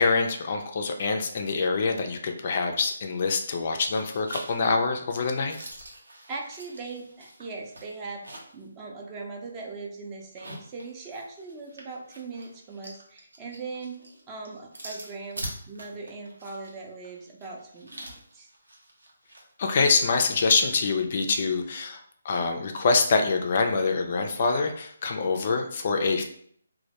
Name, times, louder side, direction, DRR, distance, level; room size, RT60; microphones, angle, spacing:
voice 1, 0.0-5.6 19.6-26.2, left 4 dB, 45° left, 4 dB, 0.3 m, -25 dB
sound 1, 3.2-3.6 3.9-8.7 9.0-9.1 10.2-19.5, right 1 dB, 85° right, 0.7 m, -44 dB
voice 2, 6.3-8.2 8.5-14.0 14.3-18.1 18.3-18.5, right 3 dB, 20° right, -1 dB, 0.4 m, -39 dB
2.1 x 2.1 x 2.8 m, 0.64 s
hypercardioid pair, 155°, 0 cm